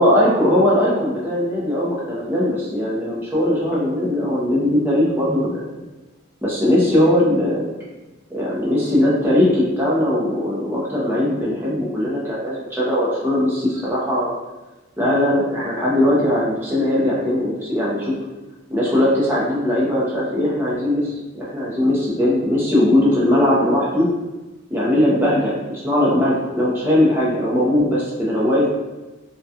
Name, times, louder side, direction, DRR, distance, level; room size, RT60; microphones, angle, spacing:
voice 1, 0.0-5.6 6.4-7.7 8.3-14.3 15.0-18.1 18.7-24.1 24.7-28.7, left 1 dB, 10° right, -7 dB, 0.5 m, -19 dB
2.3 x 2.2 x 2.7 m, 1.1 s
head